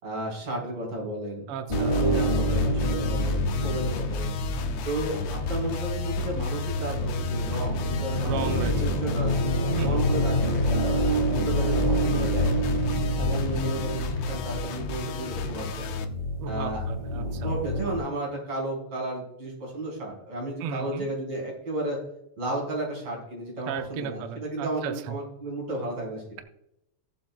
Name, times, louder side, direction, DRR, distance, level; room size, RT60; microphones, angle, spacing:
voice 1, 0.0-1.5 2.0-4.4 4.8-8.5 8.8-9.3 9.7-12.6 13.2-16.0 16.5-16.8 17.1-22.0 22.4-26.2, right 2 dB, 50° right, -2 dB, 5.5 m, -33 dB
voice 2, 1.5-2.0 8.2-8.7 9.8-10.0 16.4-17.5 20.6-21.1 23.7-25.2, right 7 dB, 75° right, 6 dB, 1.3 m, -34 dB
sound 1, 1.7-16.0, left 8 dB, 75° left, 2.2 m, -38 dB
sound 2, 1.7-18.0, left 1 dB, 25° left, 1.6 m, -27 dB
20.0 x 7.5 x 2.2 m, 0.80 s
omnidirectional pair, 3.4 m